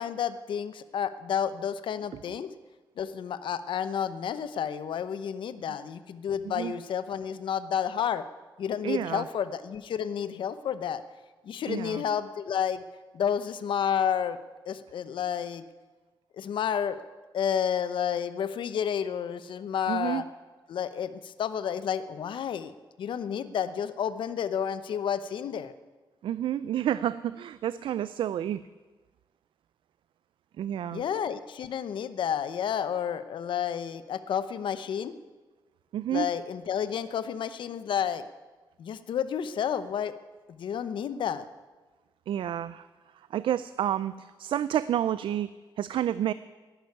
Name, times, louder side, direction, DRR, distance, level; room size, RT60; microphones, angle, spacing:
voice 1, 0.0-2.5 3.0-8.3 8.6-11.0 11.4-12.8 13.1-14.4 14.7-15.6 16.3-17.0 17.3-20.2 20.7-25.7 30.9-35.1 36.1-38.2 38.8-40.1 40.5-41.4, left 8 dB, 75° left, 13 dB, 0.8 m, -30 dB
voice 2, 8.8-9.2 11.7-12.0 19.9-20.2 26.2-28.6 30.6-31.0 35.9-36.3 42.3-42.9 43.3-45.5 45.8-46.3, right 11 dB, 85° right, 16 dB, 0.4 m, -29 dB
11.5 x 11.0 x 9.6 m, 1.3 s
wide cardioid pair, 155°, 8 cm